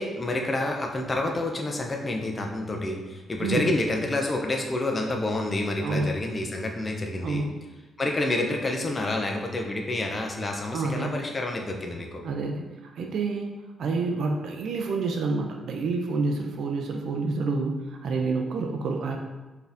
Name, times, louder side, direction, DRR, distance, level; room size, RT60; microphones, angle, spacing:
voice 1, 0.0-7.4 8.0-12.2, left 2 dB, 25° left, 1 dB, 0.4 m, -28 dB
voice 2, 3.4-3.7 5.8-6.2 7.2-7.6 10.7-11.1 12.2-19.2, right 3 dB, 65° right, 2 dB, 0.4 m, -28 dB
4.1 x 2.6 x 3.4 m, 1.2 s
cardioid pair, 145°, 0 cm